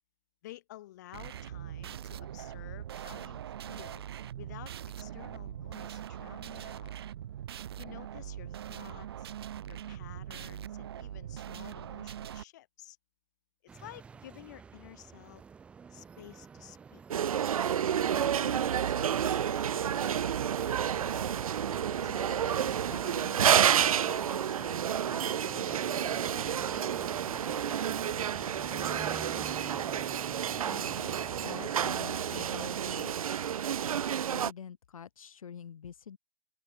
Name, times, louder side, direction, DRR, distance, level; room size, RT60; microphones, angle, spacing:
voice 1, 0.4-4.0 4.4-6.9 7.8-9.3 9.7-13.0 13.7-15.4 15.9-17.0 18.0-21.3 21.9-26.4, left 15 dB, 30° left, 0.9 m, -52 dB
sound 1, 1.1-12.4, right 11 dB, 45° right, 1.1 m, -42 dB
sound 2, 13.7-33.6, right 6 dB, 5° right, 1.2 m, -49 dB
sound 3, 17.1-34.5, right 9 dB, 75° right, 0.5 m, -30 dB
voice 2, 30.6-33.4 33.8-34.0 34.3-36.2, left 7 dB, 70° left, 1.2 m, -46 dB
open air
hypercardioid pair, 165°, 18 cm